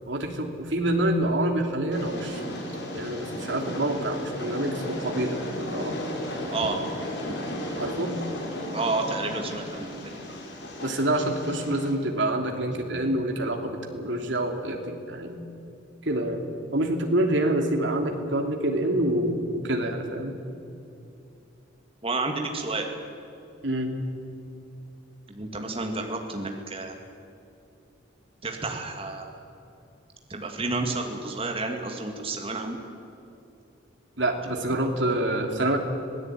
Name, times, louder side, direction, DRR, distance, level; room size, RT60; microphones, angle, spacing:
voice 1, 0.1-2.4 2.9-5.9 7.3-7.4 7.8-8.2 10.8-15.4 16.0-16.4 16.7-20.4 23.6-24.0 34.2-35.8, right 1 dB, 70° right, 3 dB, 3.0 m, -27 dB
Train, 1.9-11.9, left 1 dB, 60° left, 5.0 m, -34 dB
voice 2, 8.6-10.0 22.0-22.9 25.3-27.0 28.4-29.3 30.3-32.8, right 3 dB, 30° right, 3 dB, 2.3 m, -30 dB
26.0 x 17.5 x 9.2 m, 2.7 s
head